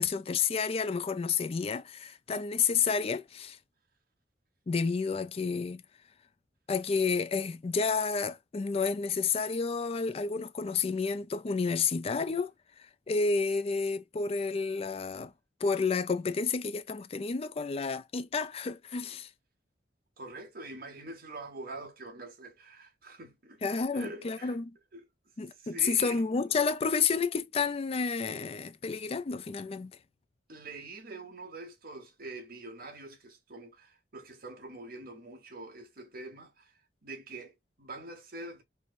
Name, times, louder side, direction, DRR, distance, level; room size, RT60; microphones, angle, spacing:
voice 1, 0.0-3.6 4.7-5.8 6.7-12.5 13.1-15.3 15.6-19.3 23.6-24.7 25.4-29.9, left 5 dB, 35° left, 0.4 m, -30 dB
voice 2, 20.2-23.6 23.9-24.6 24.9-25.0 25.6-26.2 30.5-36.7 37.0-38.6, right 2 dB, 55° right, 1.2 m, -45 dB
4.6 x 2.1 x 2.5 m
head